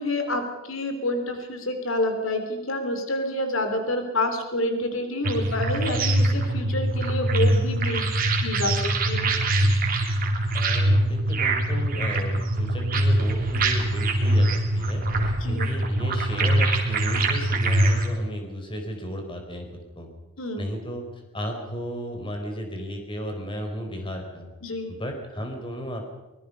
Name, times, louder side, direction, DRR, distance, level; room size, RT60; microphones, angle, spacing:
voice 1, 0.0-8.1 8.4-9.3 15.4-15.7 20.4-20.6 24.6-25.0, left 1 dB, 85° left, 6 dB, 3.2 m, -28 dB
sound 1, 5.2-18.1, right 1 dB, 45° right, 3.5 m, -23 dB
voice 2, 10.5-19.7 19.9-20.1 20.6-24.5 24.9-26.1, equal, 25° left, 4 dB, 4.1 m, -34 dB
24.0 x 21.5 x 5.5 m, 1.1 s
head